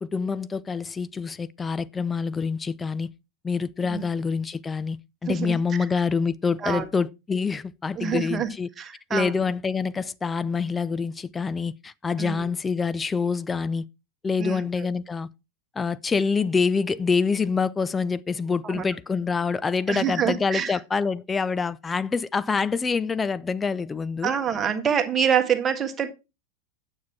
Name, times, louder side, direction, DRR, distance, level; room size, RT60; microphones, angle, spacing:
voice 1, 0.0-3.1 3.4-5.0 5.2-8.7 9.1-13.8 14.2-15.3 15.8-24.3, left 5 dB, 15° left, 0.4 m, -26 dB
voice 2, 5.3-5.6 6.6-6.8 7.9-8.5 8.8-9.4 12.2-12.5 14.4-14.7 18.6-18.8 19.9-20.8 24.2-26.1, right 8 dB, 20° right, 1.5 m, -26 dB
9.4 x 7.3 x 4.6 m
figure-of-eight pair, 90°, 0 cm